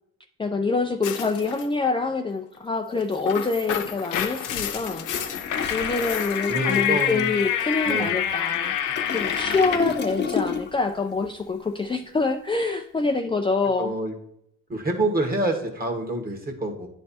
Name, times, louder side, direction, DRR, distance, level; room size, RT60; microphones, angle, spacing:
voice 1, 0.4-5.0 5.7-8.7 9.1-13.9, left 3 dB, 15° left, 2 dB, 0.5 m, -26 dB
sound 1, 1.0-1.7 3.0-9.9, left 9 dB, 90° left, 0.8 m, -28 dB
Toilet flush, 4.9-10.9 11.2-11.4, left 5 dB, 35° left, 1.0 m, -33 dB
voice 2, 6.5-7.3 7.8-8.2 9.4-9.9 13.8-14.1 14.7-16.9, right 1 dB, 30° right, 4 dB, 1.6 m, -27 dB
9.7 x 3.3 x 4.2 m, 0.74 s
cardioid pair, 90°, 30 cm